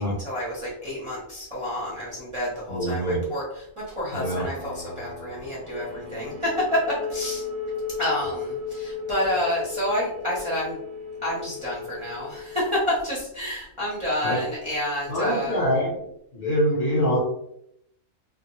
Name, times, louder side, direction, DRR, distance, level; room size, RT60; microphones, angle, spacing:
voice 1, 0.0-7.4 8.0-10.8 11.2-15.6, left 1 dB, 30° right, -7 dB, 0.6 m, -29 dB
voice 2, 2.7-3.2 4.1-4.4 14.2-14.4 15.1-16.1 16.3-17.2, equal, 50° left, -4 dB, 0.7 m, -24 dB
sound 1, 4.2-14.5, left 4 dB, 85° left, 1.0 m, -47 dB
sound 2, 5.6-13.0, left 5 dB, 70° right, 0.8 m, -34 dB
2.2 x 2.0 x 2.9 m, 0.75 s
omnidirectional pair, 1.4 m